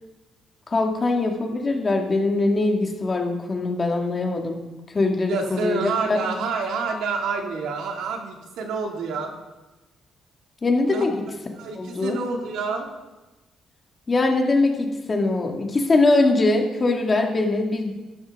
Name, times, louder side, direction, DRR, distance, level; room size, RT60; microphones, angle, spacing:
voice 1, 0.7-4.6 4.9-5.8 6.1-6.3 10.6-11.2 11.8-12.2 14.1-17.9, left 2 dB, 25° left, 2 dB, 1.7 m, -22 dB
voice 2, 5.3-9.3 10.9-11.0 11.6-12.9, right 4 dB, 85° right, 2 dB, 2.1 m, -28 dB
13.5 x 12.0 x 3.5 m, 1.1 s
cardioid pair, 135°, 0 cm